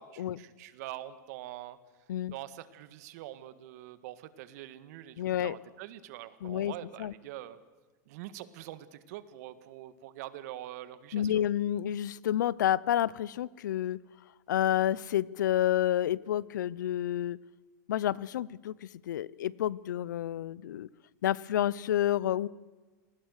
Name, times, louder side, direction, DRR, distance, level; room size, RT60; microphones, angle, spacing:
voice 1, 0.0-1.8 2.3-7.6 8.1-11.3, right 14 dB, 60° right, 14 dB, 1.8 m, -44 dB
voice 2, 5.2-5.6 6.4-6.7 7.0-7.1 11.1-14.0 14.5-17.4 17.9-20.9 21.2-22.5, left 11 dB, 90° left, 23 dB, 0.7 m, -29 dB
27.5 x 19.5 x 6.6 m, 1.3 s
supercardioid pair, 140°, 10 cm